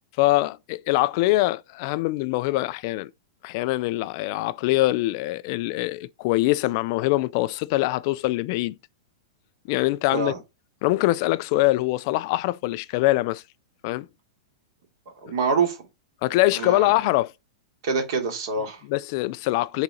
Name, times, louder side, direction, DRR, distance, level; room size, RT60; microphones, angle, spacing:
voice 1, 0.2-3.1 3.4-8.8 9.7-10.3 10.8-13.4 13.8-14.1 16.2-17.3 18.9-19.8, left 18 dB, 40° left, 0.3 m, -23 dB
voice 2, 15.2-15.8 16.5-16.9 17.8-18.8, right 4 dB, 50° right, 3.0 m, -25 dB
6.6 x 4.0 x 4.8 m
supercardioid pair, 160°, 3 cm